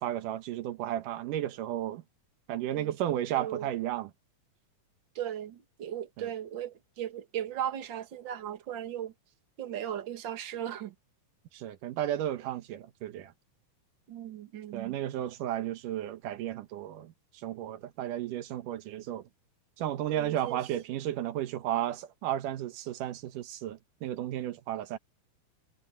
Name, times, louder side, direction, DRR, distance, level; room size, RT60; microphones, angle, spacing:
voice 1, 0.0-2.0 2.5-4.1 6.2-6.3 11.5-13.3 14.7-17.1 17.4-19.2 19.8-25.0, right 12 dB, 85° right, 2.7 m, -33 dB
voice 2, 2.7-3.7 5.2-9.1 9.6-10.9 14.1-14.9 20.1-20.6, right 10 dB, 45° right, 2.1 m, -37 dB
omnidirectional pair, 3.6 m